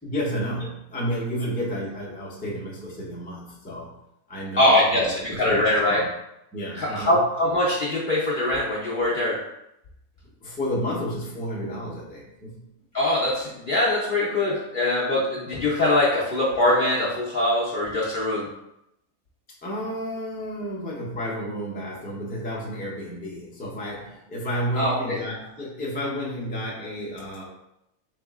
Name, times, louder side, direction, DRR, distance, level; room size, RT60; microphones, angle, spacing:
voice 1, 0.0-4.0 4.3-6.1 6.5-7.2 10.4-12.7 19.6-27.5, equal, 10° left, -5 dB, 0.4 m, -31 dB
voice 2, 4.6-6.0 6.8-9.4 12.9-18.5 24.8-25.2, left 1 dB, 50° left, -6 dB, 0.6 m, -22 dB
4.0 x 3.6 x 2.4 m, 0.83 s
omnidirectional pair, 1.6 m